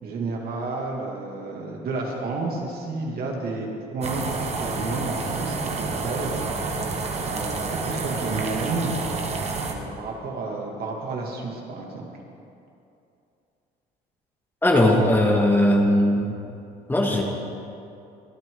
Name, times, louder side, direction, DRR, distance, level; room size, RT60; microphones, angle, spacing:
voice 1, 0.0-7.0 7.2-9.0 9.6-12.1, right 3 dB, 65° right, -1 dB, 2.6 m, -31 dB
sound 1, 4.0-9.7, right 3 dB, 40° right, 1.6 m, -29 dB
voice 2, 14.6-16.3 16.9-17.2, left 1 dB, 10° left, 0 dB, 1.8 m, -19 dB
24.5 x 9.3 x 4.0 m, 2.6 s
cardioid pair, 110°, 17 cm